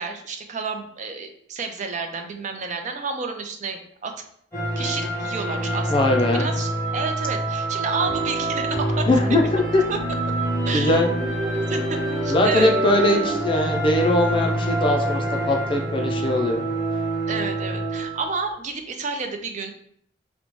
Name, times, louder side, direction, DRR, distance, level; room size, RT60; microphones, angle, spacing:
voice 1, 0.0-4.1 4.8-9.1 9.9-10.0 10.6-11.0 11.4-12.7 17.3-19.7, right 4 dB, 40° right, 5 dB, 0.4 m, -30 dB
sound 1, 4.5-18.4, right 1 dB, 10° left, 1.4 m, -26 dB
voice 2, 5.9-6.5 9.1-9.4 9.7-9.8 10.7-11.1 12.3-16.6, left 1 dB, 30° left, 2 dB, 0.4 m, -21 dB
3.9 x 2.1 x 3.0 m, 0.66 s
head